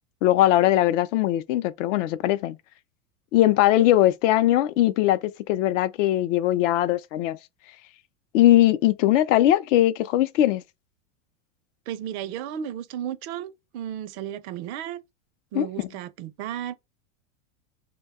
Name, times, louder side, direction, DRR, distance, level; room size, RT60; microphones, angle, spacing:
voice 1, 0.2-2.6 3.3-7.4 8.3-10.6 15.5-15.9, left 13 dB, 65° left, 0.5 m, -20 dB
voice 2, 11.9-15.0 15.5-16.7, right 10 dB, 55° right, 0.5 m, -34 dB
2.7 x 2.2 x 3.5 m
supercardioid pair, 115°, 40 cm